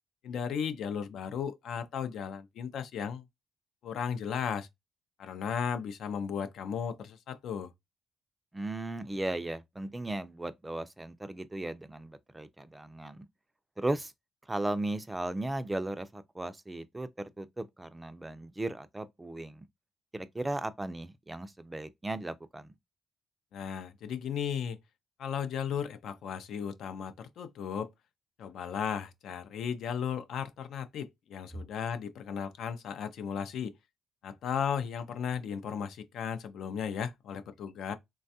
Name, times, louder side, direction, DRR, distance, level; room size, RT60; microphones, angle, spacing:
voice 1, 0.2-3.2 3.8-4.7 5.2-7.7 23.5-24.8 25.2-27.9 28.4-33.7 34.2-37.9, left 7 dB, 75° left, 0.5 m, -35 dB
voice 2, 8.5-13.3 13.8-14.1 14.5-19.7 20.1-22.7, right 2 dB, 15° right, 0.4 m, -36 dB
3.2 x 2.3 x 2.6 m
cardioid pair, 90°, 0 cm